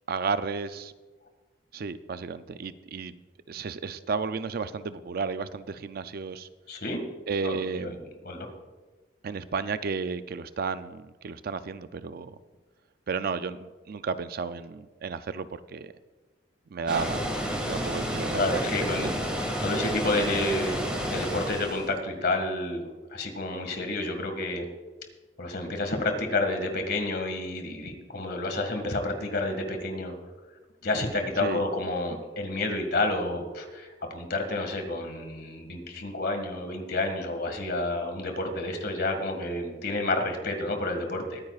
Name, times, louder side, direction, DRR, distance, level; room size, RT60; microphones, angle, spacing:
voice 1, 0.1-0.9 1.7-3.2 3.5-6.5 7.3-8.0 9.2-12.4 13.1-15.9 16.7-17.3 17.6-18.6 19.0-19.1 31.4-31.6, right 5 dB, 55° right, 13 dB, 0.4 m, -32 dB
voice 2, 6.7-7.0 7.4-7.9 8.2-8.5 18.4-19.2 19.6-22.8 23.1-24.7 25.4-30.1 30.8-41.4, left 2 dB, 60° left, 5 dB, 1.9 m, -30 dB
Water, 16.9-21.9, equal, 5° right, 1.9 m, -30 dB
22.0 x 9.6 x 2.4 m, 1.3 s
head